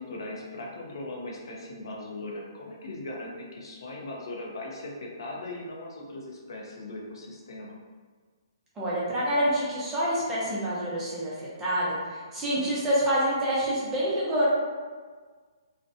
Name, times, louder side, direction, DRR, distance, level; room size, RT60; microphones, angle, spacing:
voice 1, 0.0-7.8, left 2 dB, 65° left, -1 dB, 0.5 m, -39 dB
voice 2, 8.8-14.5, equal, 10° right, -8 dB, 0.5 m, -27 dB
2.5 x 2.1 x 2.5 m, 1.5 s
hypercardioid pair, 165°, 3 cm